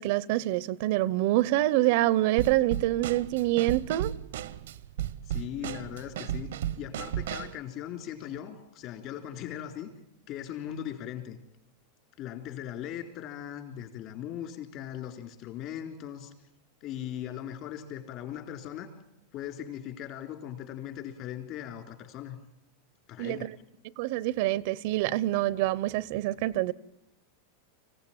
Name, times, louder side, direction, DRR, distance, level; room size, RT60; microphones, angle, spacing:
voice 1, 0.0-4.1 23.2-23.5 24.0-26.7, right 16 dB, 60° right, 0.8 m, -26 dB
Drum kit / Snare drum, 2.4-7.6, right 11 dB, 85° right, 1.0 m, -35 dB
voice 2, 5.2-9.9 10.3-11.4 12.2-16.3 16.8-18.9 19.3-22.4 23.1-23.5, left 10 dB, 45° left, 4.0 m, -39 dB
25.0 x 16.0 x 9.0 m
supercardioid pair, 140°, 0 cm